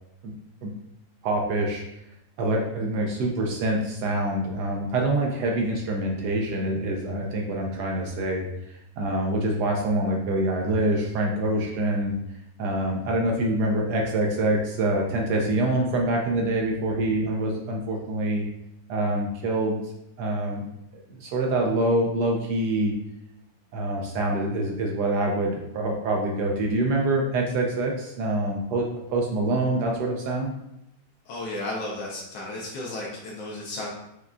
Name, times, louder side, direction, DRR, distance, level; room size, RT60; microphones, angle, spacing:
voice 1, 1.2-1.8 2.4-12.2 12.6-18.4 18.9-19.8 20.2-20.6 21.1-22.9 23.7-30.5, right 1 dB, 70° right, 0 dB, 1.0 m, -25 dB
voice 2, 31.2-33.9, left 2 dB, 90° left, -5 dB, 1.6 m, -33 dB
6.5 x 2.3 x 2.4 m, 0.82 s
omnidirectional pair, 2.1 m